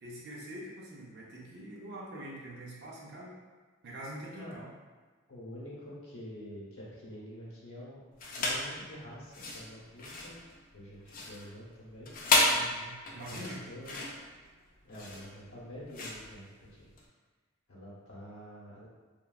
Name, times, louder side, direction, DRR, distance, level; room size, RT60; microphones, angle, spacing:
voice 1, 0.0-3.3 3.8-4.7 12.4-13.6, right 1 dB, 50° right, -4 dB, 0.5 m, -44 dB
voice 2, 5.3-8.0 8.3-10.4 10.7-12.1 13.2-13.9 14.8-16.9 17.7-18.9, equal, 75° left, -6 dB, 0.8 m, -47 dB
sound 1, 8.2-8.7 9.2-17.1, left 2 dB, 40° left, 0.4 m, -32 dB
3.0 x 2.2 x 2.2 m, 1.4 s
head